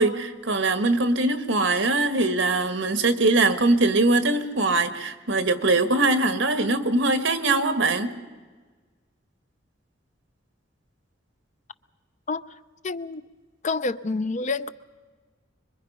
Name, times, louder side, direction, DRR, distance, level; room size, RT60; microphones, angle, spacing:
voice 1, 0.0-8.1, right 2 dB, 75° right, 1.5 m, -22 dB
voice 2, 12.8-13.2 13.6-14.7, left 3 dB, 40° left, 0.6 m, -27 dB
25.5 x 23.0 x 5.5 m
head